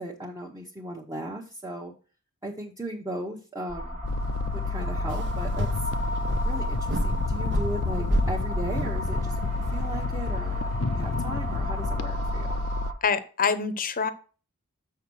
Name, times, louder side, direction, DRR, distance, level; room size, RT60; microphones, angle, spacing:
voice 1, 0.0-1.9 2.4-4.0 4.5-5.7 6.4-12.5, right 1 dB, 15° right, -2 dB, 0.9 m, -37 dB
sound 1, 3.7-12.9, equal, 30° right, 1.5 m, -34 dB
sound 2, 4.0-12.9, left 3 dB, 65° left, 0.6 m, -30 dB
sound 3, 5.1-10.0, right 1 dB, 55° right, 0.9 m, -32 dB
voice 2, 13.0-14.1, left 5 dB, 40° left, 13 dB, 0.8 m, -25 dB
7.1 x 5.7 x 6.2 m, 0.37 s
head